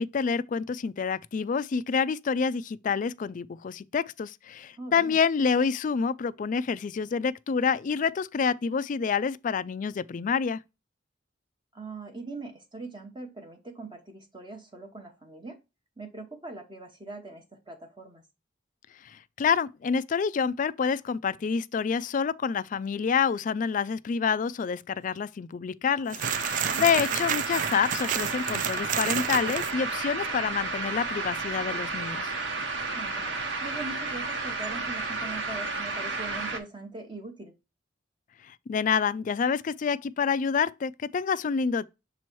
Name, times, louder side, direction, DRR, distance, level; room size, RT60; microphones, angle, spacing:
voice 1, 0.0-10.6 19.0-32.3 38.4-41.8, left 6 dB, 45° left, 0.3 m, -28 dB
voice 2, 4.8-5.2 11.7-15.6 16.0-18.2 26.6-26.9 32.9-33.3 33.6-37.5, right 3 dB, 25° right, 0.9 m, -41 dB
sound 1, 26.1-29.7, right 9 dB, 45° right, 0.3 m, -31 dB
sound 2, 26.2-36.6, right 3 dB, 75° right, 1.2 m, -32 dB
6.9 x 3.1 x 4.4 m
head